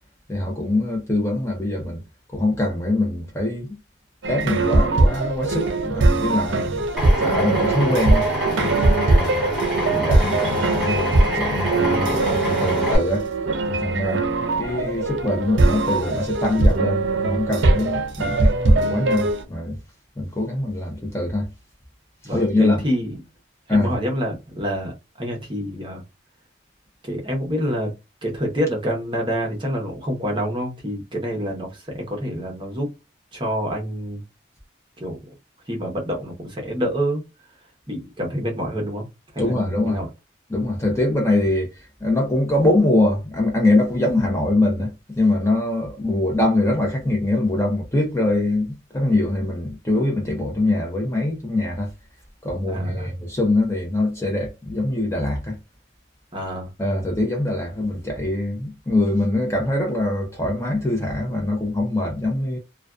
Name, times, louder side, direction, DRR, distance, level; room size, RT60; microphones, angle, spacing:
voice 1, 0.3-2.0 2.3-3.8 4.3-6.8 7.2-8.3 8.6-9.4 9.9-13.3 13.7-14.2 14.6-19.8 20.2-21.5 22.2-22.8 23.7-23.9 39.4-40.0 40.5-41.7 42.0-51.9 52.4-55.6 56.8-62.6, left 2 dB, 15° left, 0.5 m, -23 dB
sound 1, 4.2-19.4, right 2 dB, 75° right, 0.5 m, -21 dB
Drill, 7.0-13.0, left 1 dB, ahead, 1.2 m, -26 dB
voice 2, 22.2-23.2 23.7-26.0 27.0-27.9 28.2-32.9 33.3-34.2 35.0-35.2 35.7-37.2 37.9-39.1 39.3-40.1 52.7-53.1 56.3-56.7, equal, 25° right, 0.8 m, -27 dB
2.4 x 2.2 x 2.3 m
head